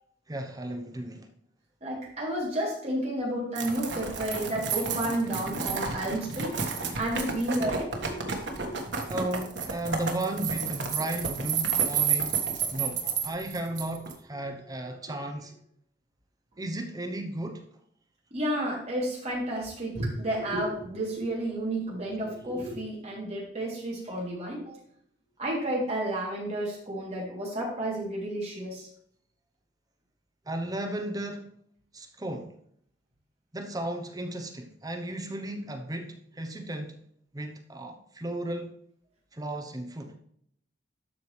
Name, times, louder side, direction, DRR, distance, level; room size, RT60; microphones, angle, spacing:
voice 1, 0.3-1.3 9.1-12.4 12.7-15.5 16.6-17.6 30.5-31.5 31.9-32.5 33.5-37.0 37.3-38.7 39.3-40.2, right 1 dB, 20° right, 0.9 m, -34 dB
voice 2, 1.8-6.5 7.0-8.7 13.0-13.1 15.0-15.1 18.3-24.8 25.4-28.9, right 1 dB, 40° right, 3.0 m, -31 dB
sound 1, 3.6-14.1, right 6 dB, 80° right, 1.6 m, -31 dB
12.5 x 4.8 x 3.3 m
head